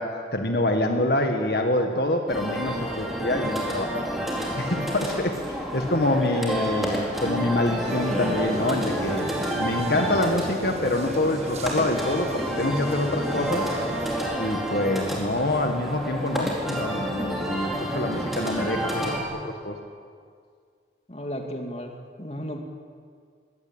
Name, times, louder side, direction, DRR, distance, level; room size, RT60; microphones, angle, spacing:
voice 1, 0.0-4.0 4.6-9.3 9.6-13.7 14.4-19.1 19.4-19.8, left 1 dB, 60° left, 4 dB, 1.7 m, -26 dB
sound 1, 2.3-19.2, equal, ahead, 4.0 m, -29 dB
sound 2, 7.9-14.2, right 1 dB, 35° right, 1.7 m, -35 dB
voice 2, 21.1-22.6, equal, 35° left, 3 dB, 2.3 m, -34 dB
23.0 x 18.0 x 8.9 m, 2.1 s
head